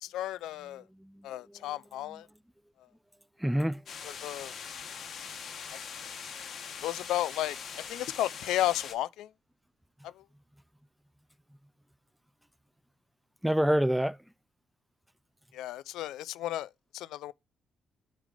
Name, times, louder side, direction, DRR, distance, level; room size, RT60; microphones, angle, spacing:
voice 1, 0.0-0.8 1.2-2.3 4.2-4.5 6.8-7.6 7.9-9.3 10.0-10.1 15.5-17.3, left 14 dB, 90° left, 0.3 m, -33 dB
voice 2, 0.7-1.8 2.1-2.2 3.4-3.8 13.4-14.2, equal, 5° right, 0.3 m, -29 dB
sound 1, 3.9-8.9, left 6 dB, 55° left, 1.2 m, -42 dB
9.0 x 3.2 x 4.9 m
cardioid pair, 90°, 0 cm